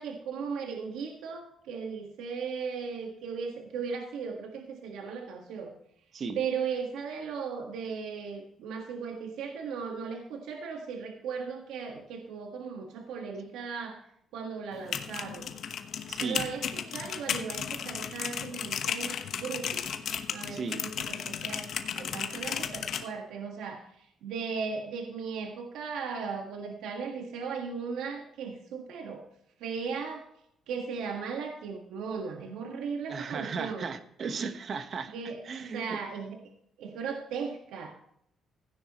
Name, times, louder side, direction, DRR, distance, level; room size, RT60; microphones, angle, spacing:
voice 1, 0.0-5.7 6.3-14.0 14.3-15.5 16.2-19.9 20.3-29.2 29.6-30.2 30.7-33.9 35.1-36.4 36.8-37.9, right 5 dB, 90° right, 3 dB, 1.6 m, -37 dB
sound 1, 14.7-23.0, left 8 dB, 65° left, 1.1 m, -34 dB
voice 2, 16.1-16.4 20.5-20.8 33.1-35.1 35.4-36.0, right 5 dB, 55° right, 9 dB, 1.2 m, -35 dB
15.5 x 10.0 x 3.0 m, 0.73 s
cardioid pair, 90°, 0 cm